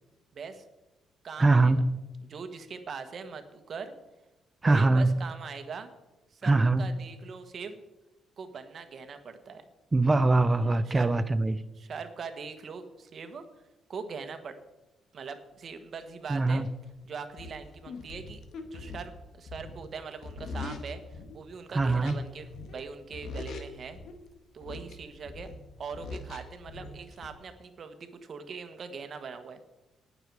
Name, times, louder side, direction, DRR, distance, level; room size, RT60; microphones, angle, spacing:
voice 1, 0.3-0.6 1.2-1.7 2.3-3.9 4.6-5.9 6.3-7.8 8.4-9.6 10.9-11.1 11.8-13.4 13.9-14.6 15.1-16.6 17.0-18.4 18.7-21.0 21.3-24.0 24.5-25.5 25.8-29.6, right 5 dB, 50° right, 8 dB, 1.5 m, -41 dB
voice 2, 1.4-2.0 4.6-5.3 6.4-7.0 9.9-11.6 16.3-16.7 21.7-22.2, right 2 dB, 25° right, 14 dB, 0.5 m, -23 dB
sound 1, 16.7-16.8 17.4-21.4 21.8-22.9 23.1-24.2 24.6-27.3, left 3 dB, 70° left, 1.6 m, -42 dB
19.0 x 6.8 x 4.8 m, 1.0 s
cardioid pair, 90°, 0 cm